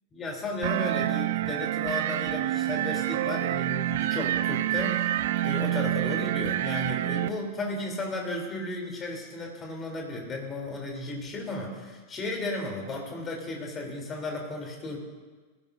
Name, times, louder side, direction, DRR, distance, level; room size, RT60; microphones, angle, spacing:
voice 1, 0.1-15.0, left 2 dB, 20° left, 0 dB, 3.6 m, -34 dB
sound 1, 0.6-7.3, right 13 dB, 55° right, 0.5 m, -27 dB
20.0 x 16.5 x 2.8 m, 1.3 s
figure-of-eight pair, 90°, 0 cm